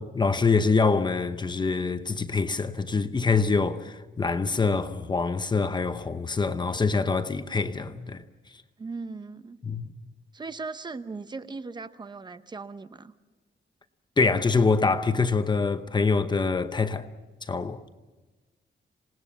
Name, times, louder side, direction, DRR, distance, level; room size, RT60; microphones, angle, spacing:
voice 1, 0.0-8.2 9.6-9.9 14.2-17.1 17.4-17.8, left 4 dB, 25° left, 0.8 m, -25 dB
voice 2, 8.8-9.6 10.3-13.1, right 4 dB, 25° right, 0.7 m, -38 dB
27.5 x 19.0 x 7.2 m
wide cardioid pair, 175°, 19 cm